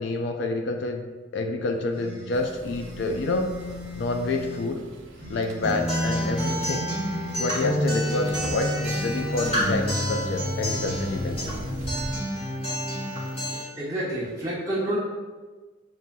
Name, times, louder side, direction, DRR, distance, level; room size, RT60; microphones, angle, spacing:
voice 1, 0.0-3.5 4.0-4.8 5.3-6.9 7.4-11.5, left 3 dB, 65° left, 5 dB, 0.3 m, -28 dB
sound 1, 1.9-4.7 5.1-7.9, left 2 dB, 85° left, 1.2 m, -40 dB
sound 2, 2.3-12.2, right 1 dB, 75° right, 0.5 m, -42 dB
Acoustic guitar, 5.6-13.6, equal, 30° left, 1.3 m, -28 dB
voice 2, 13.8-15.0, right 1 dB, 15° right, -7 dB, 1.0 m, -28 dB
7.0 x 2.4 x 2.2 m, 1.3 s
head